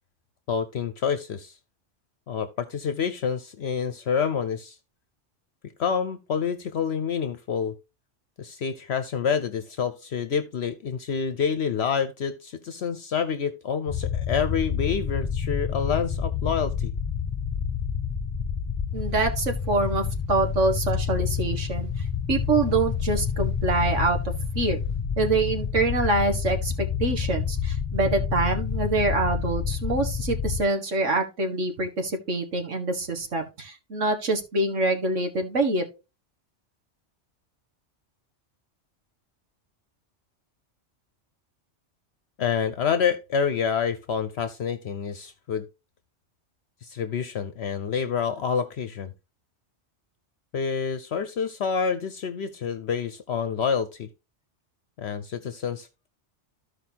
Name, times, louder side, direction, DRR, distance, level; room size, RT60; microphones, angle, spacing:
voice 1, 0.5-1.5 2.3-4.8 5.8-7.7 8.4-16.9 42.4-45.6 46.8-49.1 50.5-54.1 55.0-56.1, left 6 dB, 65° left, 1.0 m, -28 dB
sound 1, 13.9-30.6, left 6 dB, 25° left, 1.2 m, -28 dB
voice 2, 18.9-24.2 24.6-24.8 25.2-35.9, right 2 dB, 85° right, 2.0 m, -25 dB
14.0 x 4.9 x 2.9 m
omnidirectional pair, 1.2 m